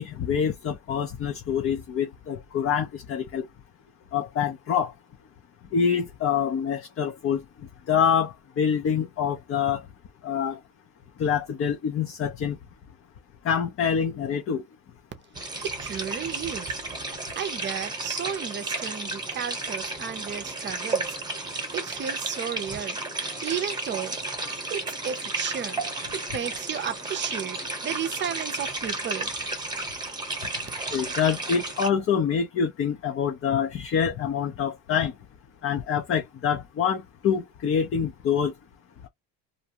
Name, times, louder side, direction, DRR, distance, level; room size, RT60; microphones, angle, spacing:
voice 1, 0.0-3.4 4.1-4.9 5.7-7.4 7.9-9.8 10.2-10.6 11.2-12.6 13.4-14.6 23.3-23.5 30.9-35.1 35.6-38.5, left 7 dB, 40° left, 0.6 m, -26 dB
sound 1, 15.3-31.9, right 2 dB, 10° right, 1.0 m, -33 dB
voice 2, 15.5-16.8 17.3-21.2 21.7-23.0 23.4-24.2 24.7-25.8 26.1-29.3, right 8 dB, 30° right, 0.6 m, -33 dB
2.6 x 2.2 x 2.8 m
cardioid pair, 125°, 36 cm